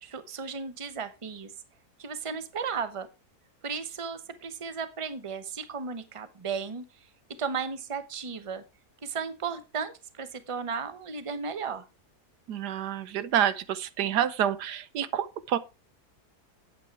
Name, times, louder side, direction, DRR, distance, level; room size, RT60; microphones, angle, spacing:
voice 1, 0.0-1.5 2.0-3.1 3.6-6.8 7.4-8.6 9.0-11.8, right 5 dB, 25° right, 0.9 m, -35 dB
voice 2, 12.5-15.6, right 10 dB, 90° right, 1.4 m, -28 dB
8.9 x 8.4 x 4.7 m
omnidirectional pair, 1.7 m